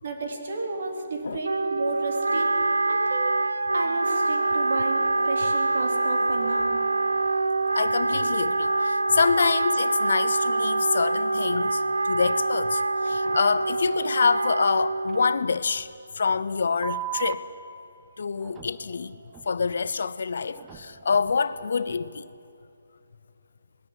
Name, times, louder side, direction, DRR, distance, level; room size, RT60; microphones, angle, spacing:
voice 1, 0.0-2.5 2.9-3.4 3.7-6.8, right 3 dB, 55° right, 3.8 m, -32 dB
Wind instrument woodwind instrument, 1.4-15.5, right 2 dB, 90° right, 0.7 m, -25 dB
voice 2, 7.7-15.9 16.1-17.4 18.2-19.2 19.5-22.3, left 5 dB, 60° left, 0.8 m, -26 dB
sound 1, 13.1-13.2 13.5-13.6 13.9-14.0 14.3-14.4 14.7-14.8 15.1-15.2 15.5-15.6 16.8-17.3 18.4-18.8 19.3-19.5 20.5-20.9, right 14 dB, 15° right, 1.2 m, -35 dB
20.0 x 16.5 x 9.8 m
figure-of-eight pair, 150°, 0 cm